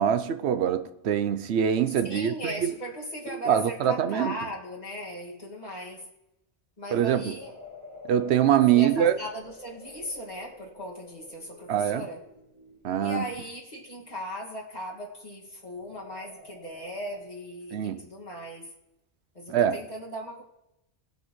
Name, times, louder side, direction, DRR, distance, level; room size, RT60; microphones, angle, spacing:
voice 1, 0.0-2.7 3.5-4.3 6.9-7.3 8.0-9.1 11.7-12.1 12.8-13.3 17.7-18.1 19.5-19.8, right 9 dB, 75° right, 0.9 m, -24 dB
voice 2, 2.0-6.1 6.8-7.6 8.7-12.2 13.0-18.7 19.3-20.4, equal, 40° left, 2.2 m, -38 dB
sound 1, 7.1-13.2 15.6-17.2, left 2 dB, 30° right, 1.8 m, -49 dB
19.5 x 8.1 x 3.1 m
omnidirectional pair, 1.1 m